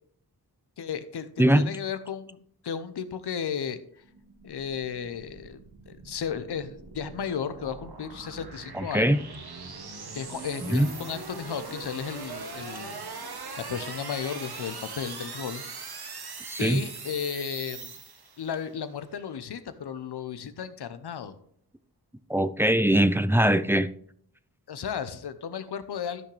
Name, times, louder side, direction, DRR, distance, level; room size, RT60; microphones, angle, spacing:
voice 1, 0.8-3.8 4.4-5.6 5.9-9.2 10.1-13.0 13.6-15.6 16.6-18.0 18.4-21.4 24.7-26.2, left 7 dB, 90° left, 11 dB, 0.8 m, -34 dB
sound 1, 4.0-18.6, right 4 dB, 75° right, 1.5 m, -41 dB
voice 2, 8.7-9.2 10.6-10.9 16.5-16.8 22.3-23.9, right 1 dB, 5° right, 13 dB, 0.5 m, -21 dB
13.5 x 6.0 x 3.3 m, 0.63 s
wide cardioid pair, 65°, 39 cm